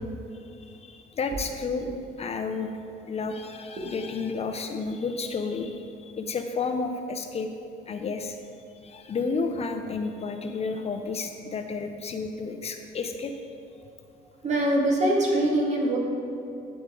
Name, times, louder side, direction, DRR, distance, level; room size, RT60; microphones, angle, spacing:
voice 1, 0.6-1.9 2.2-2.7 3.1-7.5 7.9-8.4 8.8-13.4, left 4 dB, 40° left, 6 dB, 0.6 m, -31 dB
voice 2, 14.4-16.0, right 1 dB, 45° right, -2 dB, 2.0 m, -23 dB
9.9 x 7.9 x 3.7 m, 2.7 s
cardioid pair, 110°, 17 cm